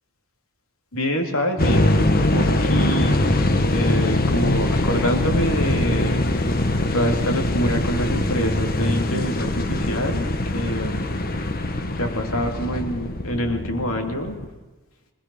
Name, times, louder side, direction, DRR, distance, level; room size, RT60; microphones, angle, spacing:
voice 1, 0.9-3.2 3.7-6.3 6.9-10.3 10.5-11.1 11.9-14.4, equal, 70° left, 3 dB, 3.3 m, -26 dB
sound 1, 1.6-14.4, left 1 dB, 45° left, 1.4 m, -22 dB
25.0 x 19.0 x 6.5 m, 1.2 s
head